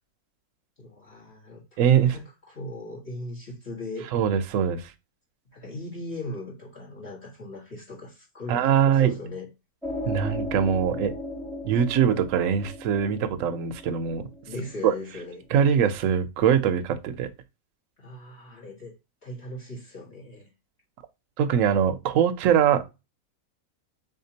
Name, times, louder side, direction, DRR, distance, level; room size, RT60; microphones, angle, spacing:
voice 1, 0.8-4.1 5.5-9.5 14.5-15.5 18.0-18.9 19.2-20.5, left 2 dB, 40° left, 1.6 m, -39 dB
voice 2, 1.8-2.1 4.1-4.8 8.5-9.1 10.1-11.1 11.6-14.2 14.8-14.9 15.5-17.3 21.4-22.8, right 8 dB, 65° right, 0.8 m, -22 dB
sound 1, 9.8-15.0, left 1 dB, ahead, 0.6 m, -36 dB
3.8 x 3.6 x 2.7 m
omnidirectional pair, 1.8 m